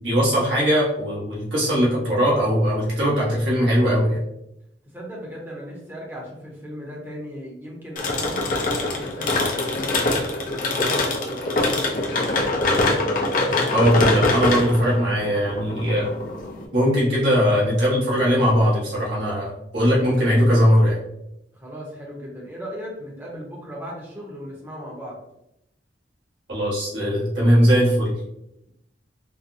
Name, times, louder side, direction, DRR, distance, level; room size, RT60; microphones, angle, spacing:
voice 1, 0.0-4.2 13.7-16.1 16.7-21.0 26.5-28.1, equal, 80° right, -6 dB, 1.3 m, -20 dB
voice 2, 4.9-11.8 21.5-25.2, equal, 10° right, -3 dB, 0.8 m, -37 dB
sound 1, 8.0-16.6, left 2 dB, 45° left, 0.6 m, -23 dB
3.9 x 2.1 x 2.6 m, 0.83 s
head